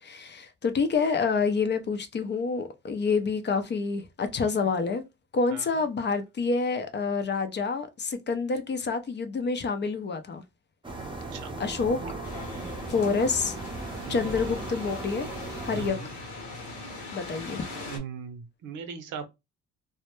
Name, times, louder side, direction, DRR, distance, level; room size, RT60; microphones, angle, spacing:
voice 1, 0.0-5.0 5.3-10.4 11.6-12.0 12.9-13.6 14.1-15.3 15.6-16.0 17.1-17.6, left 4 dB, 35° left, 0.5 m, -27 dB
sound 1, 10.8-15.9, right 2 dB, 15° right, 0.6 m, -37 dB
sound 2, 12.2-18.0, left 2 dB, 75° left, 1.0 m, -40 dB
voice 2, 14.1-14.4 15.7-16.1 17.9-19.3, right 7 dB, 80° right, 0.7 m, -39 dB
2.1 x 2.0 x 3.0 m
cardioid pair, 90°, 30 cm